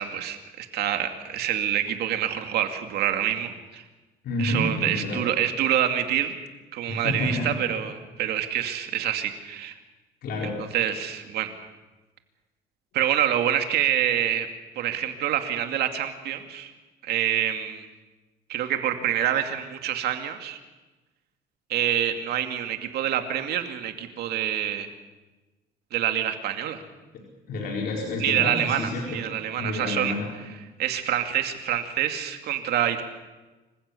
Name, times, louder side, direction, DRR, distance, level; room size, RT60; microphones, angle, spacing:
voice 1, 0.0-3.8 4.4-6.4 6.7-9.7 10.7-11.5 12.9-14.5 14.8-16.7 17.0-17.9 18.5-20.6 21.7-24.9 25.9-26.8 28.2-30.1 30.8-33.0, right 10 dB, 70° right, 6 dB, 2.5 m, -26 dB
voice 2, 4.2-5.2 6.9-7.6 10.2-10.6 27.5-29.2 29.6-30.3, left 2 dB, 65° left, -1 dB, 4.5 m, -29 dB
26.5 x 15.5 x 8.5 m, 1.2 s
cardioid pair, 110°, 17 cm